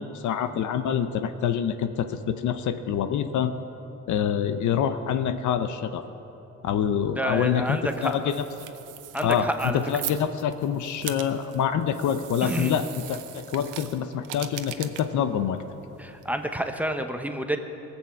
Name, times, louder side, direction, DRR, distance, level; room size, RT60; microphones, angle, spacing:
voice 1, 0.0-3.5 4.1-6.0 6.6-8.4 9.2-15.6, left 8 dB, 75° left, 10 dB, 0.8 m, -26 dB
voice 2, 7.2-8.3 9.1-9.8 12.4-12.8 16.0-17.6, right 1 dB, 5° right, 6 dB, 1.0 m, -29 dB
sound 1, 7.6-16.8, right 12 dB, 85° right, 0.8 m, -41 dB
18.5 x 7.3 x 7.4 m, 3.0 s
cardioid pair, 90°, 30 cm